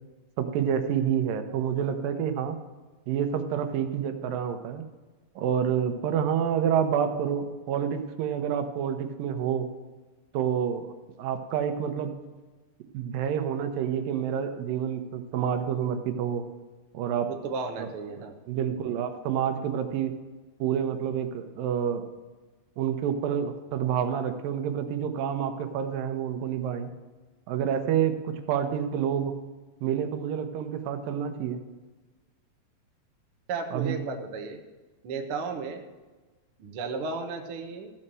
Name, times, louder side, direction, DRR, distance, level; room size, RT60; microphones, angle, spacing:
voice 1, 0.4-2.6 3.1-4.8 5.4-9.7 10.3-10.9 11.2-12.1 12.9-16.4 16.9-17.3 17.8-17.9 18.5-20.1 20.6-22.0 22.8-26.9 27.5-29.3 29.8-31.6 33.7-34.0, right 8 dB, 80° right, 7 dB, 2.6 m, -28 dB
voice 2, 17.2-18.4 18.8-18.9 33.5-34.6 35.0-35.8 36.6-37.9, right 4 dB, 65° right, 2 dB, 1.4 m, -34 dB
14.0 x 5.5 x 7.5 m, 1.3 s
omnidirectional pair, 4.0 m